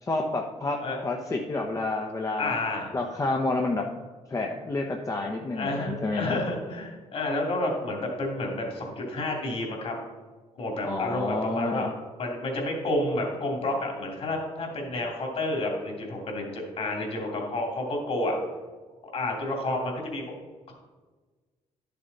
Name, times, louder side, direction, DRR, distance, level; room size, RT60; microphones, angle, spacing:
voice 1, 0.1-0.8 1.0-2.5 2.9-4.0 4.3-6.4 10.8-11.9, left 2 dB, 25° left, 1 dB, 0.9 m, -29 dB
voice 2, 2.4-3.0 5.5-9.9 10.6-11.9 12.2-18.4 19.1-20.2, left 2 dB, 55° left, 1 dB, 2.8 m, -30 dB
11.0 x 6.9 x 4.1 m, 1.4 s
cardioid pair, 100°, 12 cm